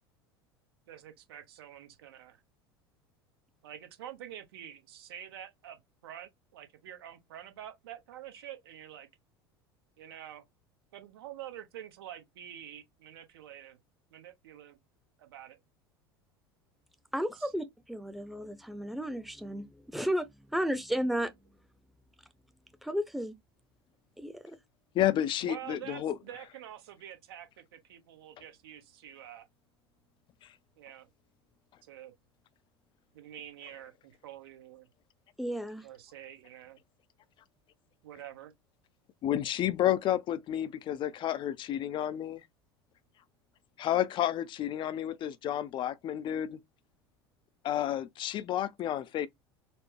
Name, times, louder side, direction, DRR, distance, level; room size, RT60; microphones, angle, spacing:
voice 1, 0.9-2.4 3.6-9.1 10.0-10.4 10.9-13.8 14.1-14.8 15.2-15.6 17.4-17.5 25.4-29.5 30.8-31.1 31.8-32.1 33.1-34.9 35.8-36.8 38.0-38.5, right 11 dB, 70° right, 1.0 m, -47 dB
voice 2, 17.1-21.3 22.8-23.3 24.2-24.6 35.4-35.9, equal, ahead, 0.7 m, -33 dB
voice 3, 24.9-26.2 39.2-42.4 43.8-46.6 47.6-49.3, left 12 dB, 40° left, 0.4 m, -30 dB
4.2 x 2.1 x 3.2 m
hypercardioid pair, 75°, 13 cm